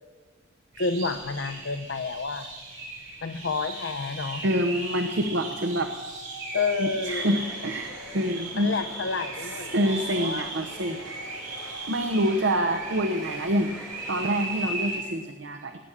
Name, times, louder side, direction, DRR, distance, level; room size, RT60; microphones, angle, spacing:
sound 1, 0.7-15.0, right 2 dB, 90° right, 4.4 m, -37 dB
voice 1, 0.8-2.5 3.2-4.4 6.5-7.4 8.6-10.4 10.9-11.0, left 4 dB, 70° left, 6 dB, 0.6 m, -30 dB
voice 2, 4.4-5.9 6.8-8.7 9.4-11.0 11.4-11.6 11.9-13.7 14.1-15.8, equal, 75° right, 7 dB, 0.9 m, -27 dB
sound 2, 7.2-14.8, left 1 dB, ahead, 2.6 m, -47 dB
18.5 x 8.7 x 7.3 m, 1.5 s
head